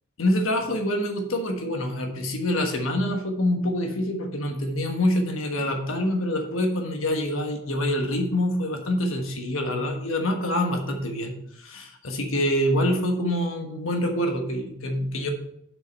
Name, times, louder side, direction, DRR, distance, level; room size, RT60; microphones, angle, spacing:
voice 1, 0.2-15.3, left 1 dB, 75° left, 4 dB, 1.3 m, -26 dB
7.7 x 5.6 x 5.3 m, 0.75 s
head